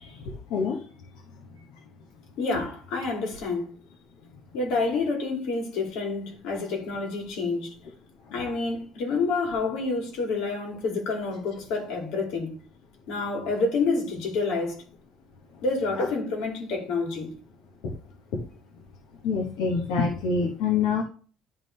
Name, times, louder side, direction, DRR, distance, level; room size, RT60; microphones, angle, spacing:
voice 1, 2.4-3.7 4.5-7.7 8.3-12.5 13.1-14.8 15.6-17.3, left 3 dB, 75° left, 2.7 m, -28 dB
voice 2, 19.2-21.0, left 5 dB, 90° left, 1.2 m, -25 dB
11.0 x 3.8 x 3.3 m
cardioid pair, 180°, 0 cm